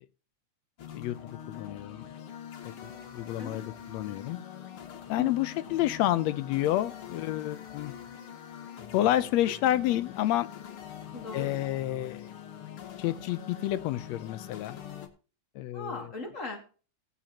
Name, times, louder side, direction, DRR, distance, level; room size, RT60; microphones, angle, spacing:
sound 1, 0.8-15.1, left 9 dB, 55° left, 1.9 m, -44 dB
voice 1, 1.5-2.1 2.8-4.4 5.1-7.9 8.9-10.5 11.3-12.2 13.0-14.8 15.6-16.0, left 13 dB, 75° left, 1.7 m, -29 dB
voice 2, 5.2-5.8 9.4-9.5 11.1-11.6 15.7-16.8, left 2 dB, 30° left, 2.3 m, -39 dB
18.5 x 8.9 x 2.9 m
omnidirectional pair, 3.4 m